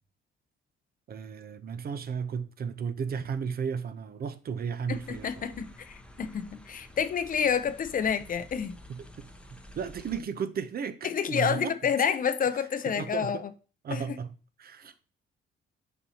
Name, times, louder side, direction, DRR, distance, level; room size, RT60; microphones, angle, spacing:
voice 1, 1.1-5.5 8.9-11.7 12.5-13.4 13.8-14.3 14.6-14.9, right 6 dB, 50° right, 0.7 m, -34 dB
voice 2, 4.9-8.8 11.0-13.5 13.9-14.2, left 7 dB, 45° left, 0.6 m, -29 dB
sound 1, 4.9-10.2, left 1 dB, 5° left, 0.8 m, -50 dB
6.8 x 5.4 x 2.8 m
cardioid pair, 90°, 20 cm